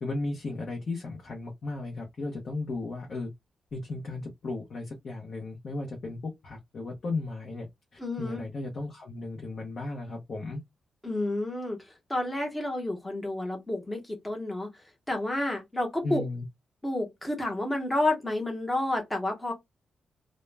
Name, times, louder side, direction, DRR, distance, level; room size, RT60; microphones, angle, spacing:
voice 1, 0.0-3.3 3.7-7.7 7.9-10.6 16.0-16.5, left 2 dB, 45° left, 0.6 m, -35 dB
voice 2, 8.0-8.4 11.0-11.8 12.1-14.7 15.1-16.2 16.8-19.5, left 1 dB, 10° left, 0.8 m, -30 dB
2.2 x 2.0 x 3.1 m
wide cardioid pair, 175°, 0 cm